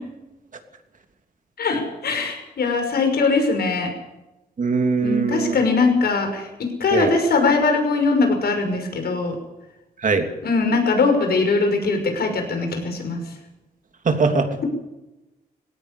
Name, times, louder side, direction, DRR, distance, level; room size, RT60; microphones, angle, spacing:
voice 1, 1.6-3.9 5.0-9.4 10.4-13.2, left 3 dB, 85° left, 5 dB, 6.0 m, -21 dB
voice 2, 4.6-5.5 6.9-7.1 10.0-10.3 14.0-14.5, right 4 dB, 55° right, 5 dB, 3.1 m, -20 dB
19.5 x 17.0 x 8.5 m, 0.98 s
wide cardioid pair, 105°, 16 cm